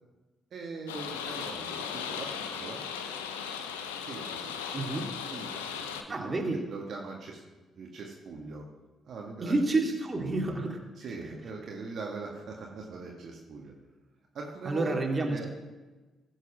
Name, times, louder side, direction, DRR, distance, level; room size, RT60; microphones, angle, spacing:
voice 1, 0.5-2.8 4.0-4.6 5.3-7.4 7.7-8.6 9.0-9.5 10.1-10.5 11.0-13.7 14.3-15.5, right 4 dB, 60° right, -1 dB, 1.7 m, -41 dB
sound 1, 0.9-6.0, left 7 dB, 85° left, 0.7 m, -37 dB
voice 2, 4.7-5.1 6.1-6.6 9.4-10.8 14.7-15.5, right 2 dB, 30° right, 2 dB, 2.4 m, -29 dB
16.0 x 6.6 x 6.1 m, 1.2 s
hypercardioid pair, 45°, 0 cm